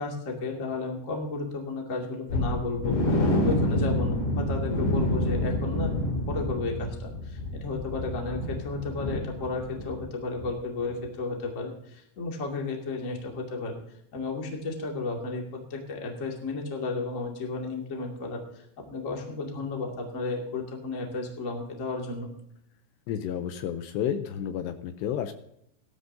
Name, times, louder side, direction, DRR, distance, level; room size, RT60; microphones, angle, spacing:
voice 1, 0.0-13.7 14.1-22.3, left 3 dB, 30° left, 0 dB, 1.6 m, -33 dB
sound 1, 2.3-10.1 10.3-10.5 10.9-11.0, left 1 dB, 60° left, 4.5 m, -28 dB
voice 2, 23.1-25.3, left 9 dB, 80° left, 8 dB, 2.7 m, -31 dB
17.5 x 12.5 x 2.7 m, 0.73 s
omnidirectional pair, 5.2 m